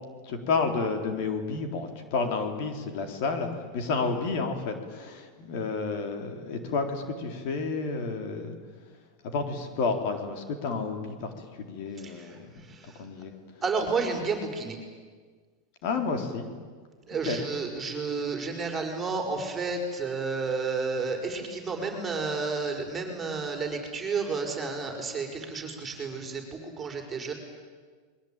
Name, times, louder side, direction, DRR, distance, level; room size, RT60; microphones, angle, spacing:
voice 1, 0.2-8.6 9.2-13.3 15.8-16.5 17.1-17.4, left 4 dB, 55° left, 5 dB, 3.9 m, -31 dB
voice 2, 12.0-13.0 13.6-14.8 17.0-27.3, right 4 dB, 15° right, 3 dB, 5.1 m, -31 dB
29.0 x 22.0 x 9.1 m, 1.5 s
supercardioid pair, 155°, 0 cm